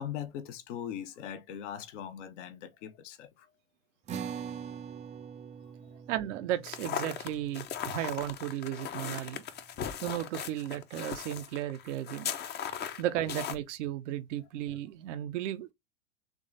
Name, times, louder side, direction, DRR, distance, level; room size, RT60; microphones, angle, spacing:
voice 1, 0.0-3.5 5.8-6.0 7.9-8.1 9.6-9.8 11.0-11.1 12.5-13.0, left 9 dB, 65° left, 1.0 m, -42 dB
sound 1, 4.1-10.7, right 7 dB, 20° right, 0.4 m, -45 dB
voice 2, 6.1-9.4 10.0-12.3 13.0-15.7, right 12 dB, 65° right, 0.7 m, -34 dB
Walking in the snow, 6.6-13.6, left 8 dB, 25° left, 0.6 m, -38 dB
3.8 x 3.2 x 3.7 m
hypercardioid pair, 95°, 39 cm